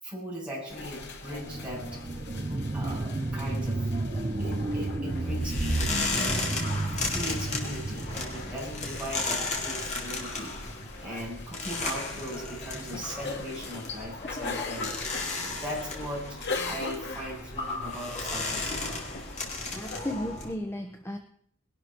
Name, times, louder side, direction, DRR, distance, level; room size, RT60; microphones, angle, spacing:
voice 1, 0.0-2.0 2.4-3.9 4.1-6.5 7.1-14.9 15.4-19.0, equal, 5° right, -5 dB, 8.0 m, -39 dB
sound 1, 0.7-20.1, left 3 dB, 55° left, 2.2 m, -41 dB
sound 2, 1.3-10.4 10.8-10.9, right 2 dB, 25° right, 0.6 m, -33 dB
sound 3, 5.0-20.5, left 2 dB, 35° left, 3.4 m, -34 dB
voice 2, 19.7-21.2, left 1 dB, 10° left, 5 dB, 1.1 m, -34 dB
21.0 x 12.0 x 4.5 m, 0.62 s
head